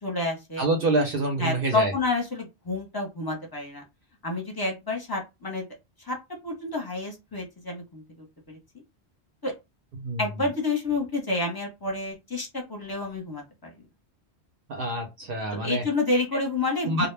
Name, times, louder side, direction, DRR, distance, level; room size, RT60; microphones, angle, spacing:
voice 1, 0.0-0.6 1.4-3.8 4.2-5.6 6.0-6.2 6.4-8.6 9.4-9.5 10.2-13.7 15.5-17.1, left 3 dB, 25° left, 1 dB, 0.7 m, -29 dB
voice 2, 0.6-1.9 10.0-10.5 14.7-15.8 16.8-17.1, right 2 dB, 60° right, 3 dB, 0.7 m, -26 dB
2.1 x 2.1 x 3.2 m, 0.23 s
omnidirectional pair, 1.1 m